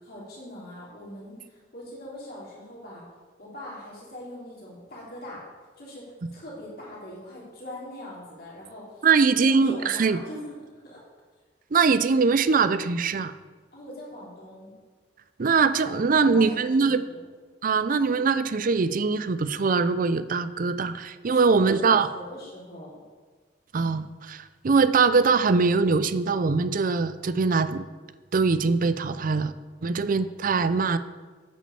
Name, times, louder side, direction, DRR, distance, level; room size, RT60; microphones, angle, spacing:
voice 1, 0.0-3.0 3.4-5.4 5.8-9.1 9.4-10.6 10.8-11.0 13.7-14.7 15.8-17.2 21.3-23.0 30.0-30.6, left 1 dB, 55° left, -5 dB, 3.5 m, -42 dB
voice 2, 9.0-10.2 11.7-13.3 15.4-17.0 17.6-22.1 23.7-27.8 28.3-29.5 29.8-31.0, right 4 dB, 50° right, 13 dB, 0.5 m, -22 dB
8.7 x 6.2 x 6.9 m, 1.4 s
head